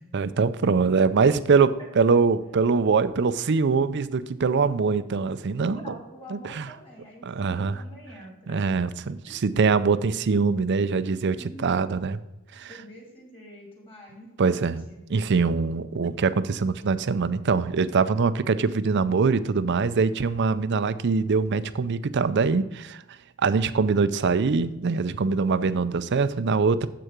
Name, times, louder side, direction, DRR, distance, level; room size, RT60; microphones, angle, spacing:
voice 1, 0.1-1.7 2.0-5.8 6.3-6.7 7.2-7.8 8.5-12.2 12.6-12.7 14.4-14.8 15.1-23.0 23.4-26.9, right 4 dB, 50° right, 14 dB, 0.5 m, -23 dB
voice 2, 5.7-8.7 9.2-9.3 11.4-11.8 12.7-15.0 25.7-26.0, equal, 25° left, -1 dB, 2.8 m, -46 dB
7.8 x 6.5 x 5.9 m, 1.0 s
head